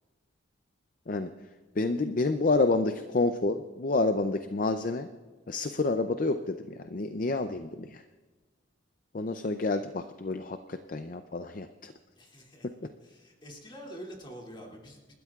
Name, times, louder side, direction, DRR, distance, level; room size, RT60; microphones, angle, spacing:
voice 1, 1.8-5.1 5.5-8.0 9.1-11.9, left 3 dB, 40° left, 8 dB, 0.5 m, -29 dB
voice 2, 12.2-12.7 13.0-15.1, equal, 25° left, -2 dB, 2.6 m, -46 dB
29.0 x 12.5 x 2.4 m, 1.3 s
head